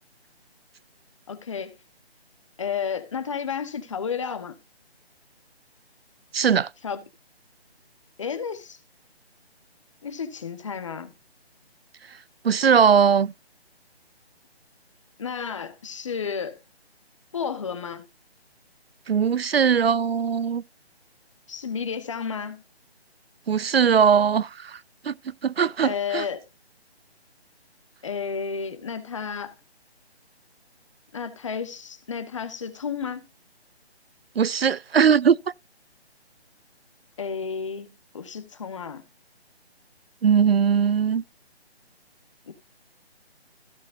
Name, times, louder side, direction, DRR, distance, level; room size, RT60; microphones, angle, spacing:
voice 1, 1.3-1.8 2.6-4.6 6.8-7.0 8.2-8.8 10.0-11.1 15.2-16.6 17.3-18.1 21.5-22.6 25.8-26.4 28.0-29.5 31.1-33.2 37.2-39.0 42.5-42.6, left 6 dB, 30° left, 1.2 m, -32 dB
voice 2, 6.3-6.7 12.4-13.3 19.1-20.6 23.5-24.8 25.0-25.1 25.4-26.2 34.4-35.4 40.2-41.2, right 7 dB, 65° right, 0.5 m, -20 dB
15.5 x 7.1 x 2.6 m
figure-of-eight pair, 165°, 33 cm